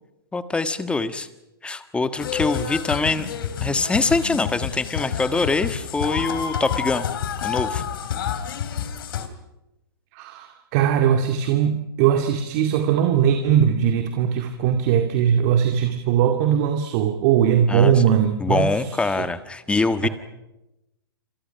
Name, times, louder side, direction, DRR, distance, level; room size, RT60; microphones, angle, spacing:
voice 1, 0.3-1.3 1.6-3.3 3.6-7.1 7.4-7.8 17.7-17.9 18.4-20.1, left 3 dB, 10° left, 1.5 m, -24 dB
sound 1, 2.2-9.3, left 8 dB, 60° left, 3.3 m, -29 dB
voice 2, 10.1-19.3 20.0-20.1, right 8 dB, 45° right, 2.3 m, -20 dB
28.0 x 27.5 x 5.8 m
hypercardioid pair, 125°, 13 cm